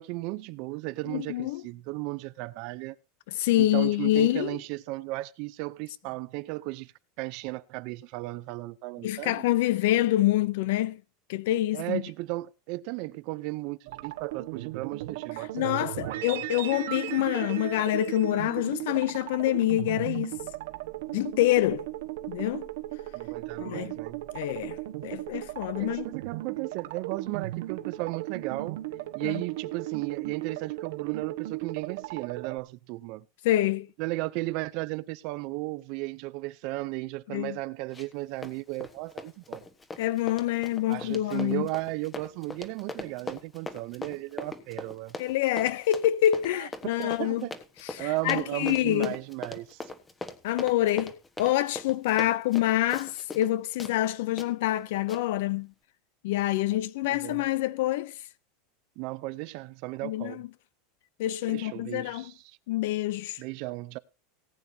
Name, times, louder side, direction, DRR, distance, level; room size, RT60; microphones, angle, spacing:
voice 1, 0.0-3.0 3.6-6.9 7.2-9.5 11.7-16.4 23.1-24.2 25.8-28.8 29.1-33.2 34.0-39.6 40.9-45.1 46.6-46.7 47.0-47.6 48.0-49.9 57.0-57.4 59.0-60.4 61.5-62.6 63.4-64.0, right 20 dB, 45° right, 0.5 m, -35 dB
voice 2, 1.1-1.6 3.3-4.6 9.0-11.0 11.3-12.0 15.5-20.3 21.1-21.9 22.3-22.7 23.6-24.0 24.3-26.1 29.2-29.4 33.4-33.9 37.3-37.6 40.0-41.7 45.2-47.5 47.8-49.2 50.4-55.7 56.2-58.2 60.0-60.5 61.2-62.3 62.7-63.4, left 14 dB, 65° left, 0.5 m, -26 dB
sound 1, 13.9-32.6, right 16 dB, 70° right, 1.3 m, -36 dB
Run, 37.9-38.2 38.4-53.5 53.8-53.9 54.4-54.5 55.1-55.2, left 3 dB, 10° left, 1.1 m, -40 dB
19.0 x 9.0 x 2.7 m
supercardioid pair, 170°, 0 cm